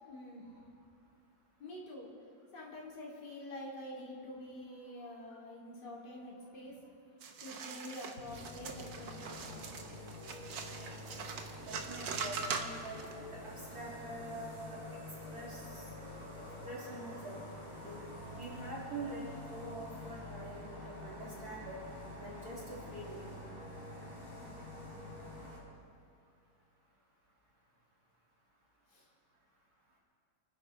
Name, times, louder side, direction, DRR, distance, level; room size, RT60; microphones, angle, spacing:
voice 1, 0.1-0.5 1.6-2.1 2.5-6.8 7.4-9.7 28.9-29.1, left 1 dB, 65° left, -5 dB, 3.6 m, -47 dB
voice 2, 4.8-5.1 11.6-14.8 15.3-15.8 16.6-17.4 17.8-18.0 18.4-19.2 19.5-21.8 22.2-23.2, right 2 dB, 55° right, -6 dB, 3.9 m, -45 dB
sound 1, 7.2-13.1, right 5 dB, 85° right, 1.9 m, -42 dB
sound 2, 8.3-25.6, left 1 dB, 25° right, 5.1 m, -47 dB
29.0 x 10.5 x 4.5 m, 2.5 s
omnidirectional pair, 1.9 m